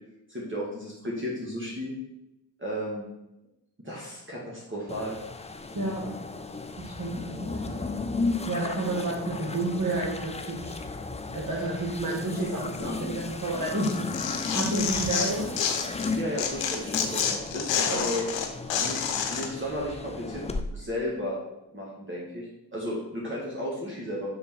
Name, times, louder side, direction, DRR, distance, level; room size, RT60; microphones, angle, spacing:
voice 1, 0.3-1.9 2.6-3.1 3.8-5.2 16.1-18.3 18.8-19.0 19.3-20.4 20.7-21.4 21.7-24.3, equal, 25° right, -5 dB, 1.9 m, -34 dB
sound 1, 4.9-20.6, left 3 dB, 15° left, 0.5 m, -35 dB
voice 2, 5.8-6.1 6.8-7.8 8.4-10.8 11.3-15.5 17.9-18.0, right 2 dB, 45° right, -4 dB, 1.8 m, -30 dB
Tearing, 13.8-16.1 16.4-19.5, left 7 dB, 90° left, 0.7 m, -28 dB
6.2 x 3.6 x 4.6 m, 0.92 s
supercardioid pair, 45°, 43 cm